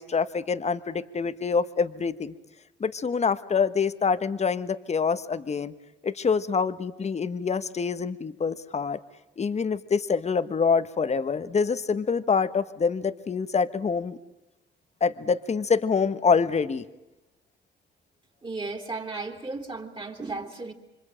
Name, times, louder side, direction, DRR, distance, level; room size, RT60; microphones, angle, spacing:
voice 1, 0.0-2.3 2.8-5.7 6.0-9.0 9.4-14.2 15.0-16.8, left 5 dB, 35° left, 13 dB, 1.2 m, -26 dB
voice 2, 18.4-20.7, right 3 dB, 25° right, 2 dB, 3.6 m, -35 dB
26.5 x 25.0 x 8.9 m, 1.0 s
cardioid pair, 90°, 20 cm